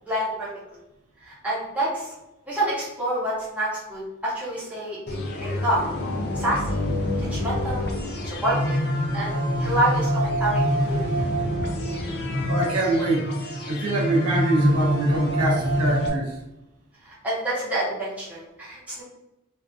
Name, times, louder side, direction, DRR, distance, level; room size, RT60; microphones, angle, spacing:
voice 1, 0.1-0.5 1.2-2.1 2.5-5.8 6.3-6.8 7.2-7.9 8.2-8.8 9.1-11.0 17.0-19.0, right 1 dB, 5° right, -9 dB, 0.8 m, -28 dB
sound 1, 5.1-16.1, equal, 50° left, 0.5 m, -26 dB
voice 2, 12.5-13.3 13.7-16.3, right 2 dB, 90° right, -2 dB, 0.6 m, -24 dB
2.5 x 2.3 x 2.3 m, 0.95 s
head